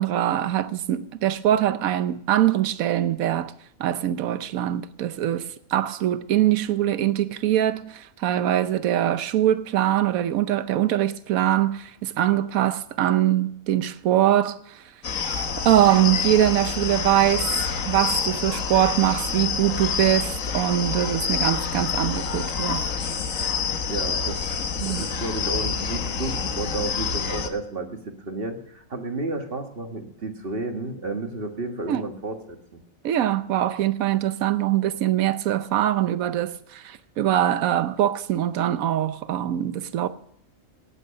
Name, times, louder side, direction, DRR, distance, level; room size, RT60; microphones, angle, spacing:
voice 1, 0.0-3.5 3.8-14.8 15.6-22.9 24.8-25.0 31.9-32.0 33.0-40.1, right 12 dB, 85° right, 1.2 m, -23 dB
sound 1, 15.0-27.5, left 6 dB, 70° left, 1.5 m, -27 dB
voice 2, 23.9-32.8, right 3 dB, 45° right, 1.7 m, -32 dB
19.0 x 7.7 x 6.4 m
omnidirectional pair, 1.4 m